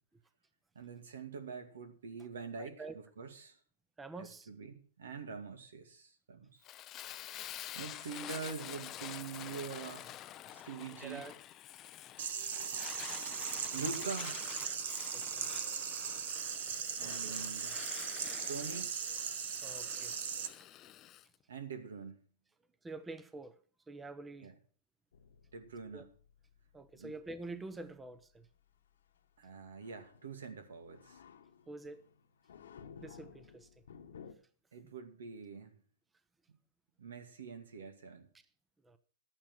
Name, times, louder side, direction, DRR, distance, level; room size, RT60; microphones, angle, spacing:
voice 1, 0.7-3.6 4.2-6.6 7.8-10.1 10.5-11.3 13.7-14.7 17.0-17.9 18.5-19.0 21.5-22.2 24.4-24.5 25.5-26.1 26.9-27.1 29.4-31.2 34.7-35.8 37.0-38.3, right 5 dB, 85° right, 2.4 m, -45 dB
voice 2, 2.6-3.0 4.0-4.5 11.0-11.3 15.1-15.5 17.0-17.4 19.6-20.2 20.5-20.7 22.8-23.6 23.9-24.5 25.9-26.0 26.7-28.5 31.7-32.0 33.0-33.7 34.8-34.9 38.8-39.0, right 3 dB, 10° right, 0.7 m, -47 dB
Fire, 6.6-21.3, left 12 dB, 25° left, 0.5 m, -48 dB
sound 1, 12.2-20.5, right 8 dB, 65° right, 1.2 m, -38 dB
sound 2, 25.1-34.3, left 7 dB, 80° left, 1.3 m, -57 dB
12.0 x 8.9 x 6.3 m
hypercardioid pair, 145°, 0 cm